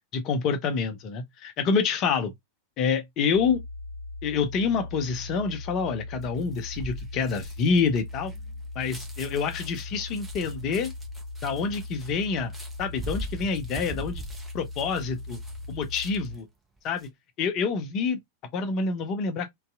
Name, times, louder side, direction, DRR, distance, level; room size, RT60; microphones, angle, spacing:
voice 1, 0.1-2.3 2.8-3.6 4.2-8.3 8.8-10.9 11.4-12.5 12.8-14.2 14.5-15.4 15.7-16.5 16.8-17.1 17.4-18.2 18.5-19.5, left 5 dB, 35° left, 0.5 m, -27 dB
sound 1, 3.3-16.4, left 2 dB, 65° right, 0.7 m, -39 dB
sound 2, 6.2-16.4 16.8-17.1, right 1 dB, 10° right, 0.7 m, -42 dB
2.6 x 2.3 x 2.3 m
figure-of-eight pair, 90°, 0 cm